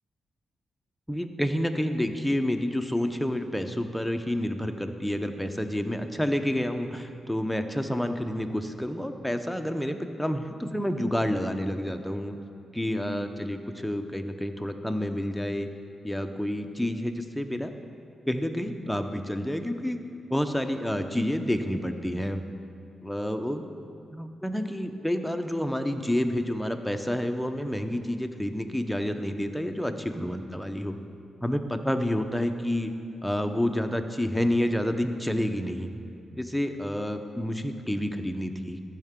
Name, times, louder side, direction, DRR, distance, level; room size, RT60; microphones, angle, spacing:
voice 1, 1.1-12.4 12.7-15.7 16.0-17.7 18.3-20.0 20.3-22.4 23.0-23.7 24.1-31.0 31.4-32.9 33.2-35.9 36.3-38.8, equal, 5° left, 6 dB, 0.8 m, -29 dB
14.0 x 5.7 x 3.7 m, 2.4 s
supercardioid pair, 55°, 0 cm